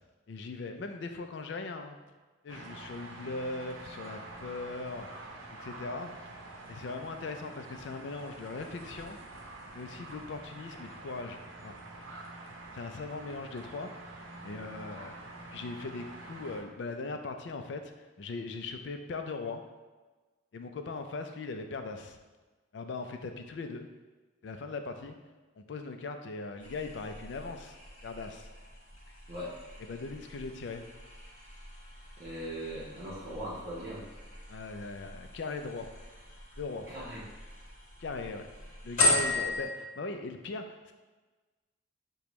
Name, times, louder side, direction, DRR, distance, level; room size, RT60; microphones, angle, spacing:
voice 1, 0.3-2.0 2.4-5.3 5.6-6.1 6.7-9.2 9.7-11.7 12.7-15.1 15.5-19.6 20.5-22.2 22.7-23.9 24.4-25.2 25.6-27.8 28.0-28.5 29.1-29.2 29.8-30.9 34.5-35.9 36.6-36.9 38.0-38.5 38.8-40.9, left 3 dB, 65° left, 6 dB, 0.4 m, -39 dB
sound 1, 2.5-16.6, right 2 dB, 85° right, 0.7 m, -47 dB
sound 2, 26.6-39.6, left 1 dB, 40° left, 1.0 m, -37 dB
voice 2, 32.2-34.1 36.9-37.3 39.3-39.4, equal, 45° right, -8 dB, 0.8 m, -40 dB
6.7 x 2.2 x 3.0 m, 1.3 s
head